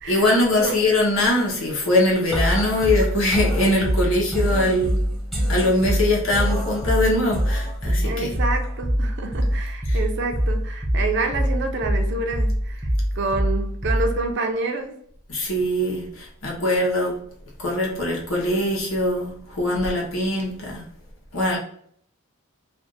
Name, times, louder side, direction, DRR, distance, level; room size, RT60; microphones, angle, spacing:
voice 1, 0.1-5.0 5.5-8.3 9.9-10.0 15.3-17.1 17.6-20.8 21.3-21.6, left 1 dB, 75° left, -2 dB, 1.1 m, -22 dB
sound 1, 2.3-14.3, equal, ahead, 0.7 m, -24 dB
voice 2, 8.0-12.9 13.2-15.0, right 3 dB, 60° right, 4 dB, 0.5 m, -28 dB
2.6 x 2.5 x 3.8 m, 0.63 s
head